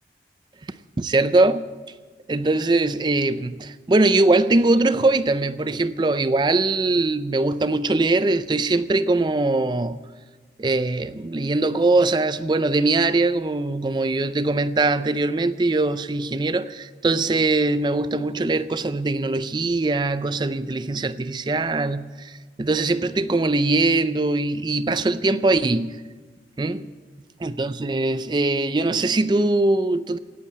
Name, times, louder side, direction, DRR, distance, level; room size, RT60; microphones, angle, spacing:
voice 1, 1.0-1.7 2.3-10.0 10.6-26.0 26.6-26.9 27.4-30.2, right 2 dB, 25° right, 0.4 m, -21 dB
17.5 x 8.6 x 8.5 m
head